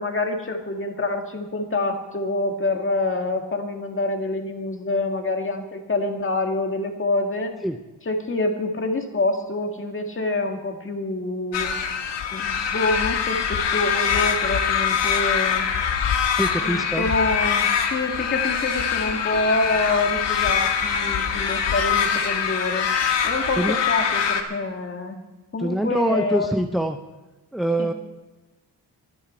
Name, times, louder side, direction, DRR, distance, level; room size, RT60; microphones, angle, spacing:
voice 1, 0.0-7.5 8.1-11.7 12.3-15.7 16.6-22.9 23.2-25.2 25.5-26.5 27.8-27.9, left 2 dB, 30° left, 3 dB, 2.0 m, -26 dB
sound 1, 11.5-24.4, left 7 dB, 90° left, 1.7 m, -23 dB
voice 2, 16.3-17.1 23.6-23.8 25.6-27.0 27.5-27.9, right 1 dB, ahead, 5 dB, 0.6 m, -24 dB
Microwave oven, 17.0-17.2 17.8-24.6, right 5 dB, 55° right, 4.9 m, -43 dB
24.0 x 10.0 x 4.4 m, 1.2 s
wide cardioid pair, 145°, 41 cm